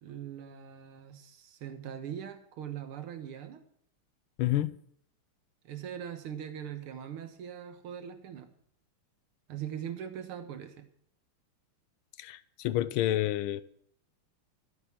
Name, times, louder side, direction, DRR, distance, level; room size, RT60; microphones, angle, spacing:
voice 1, 0.0-3.6 5.6-8.5 9.5-10.9, right 9 dB, 80° right, 2.2 m, -41 dB
voice 2, 4.4-4.7 12.2-13.6, left 14 dB, 80° left, 1.5 m, -29 dB
13.5 x 8.1 x 7.4 m
omnidirectional pair, 2.4 m